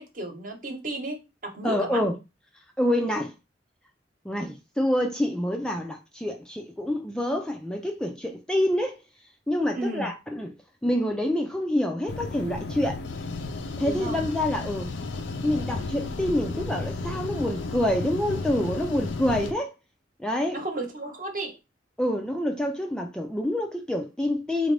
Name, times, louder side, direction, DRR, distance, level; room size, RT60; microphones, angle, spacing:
voice 1, 0.0-2.0 9.7-10.1 13.8-14.2 20.5-21.6, right 2 dB, 45° right, 1.0 m, -33 dB
voice 2, 1.6-2.2 2.8-3.3 4.2-9.0 9.5-10.5 10.8-13.0 13.8-14.9 15.4-19.7 20.2-20.6 22.0-24.7, left 1 dB, 5° left, 0.3 m, -27 dB
sound 1, 12.1-19.5, left 3 dB, 75° left, 0.5 m, -33 dB
4.2 x 2.5 x 3.2 m
head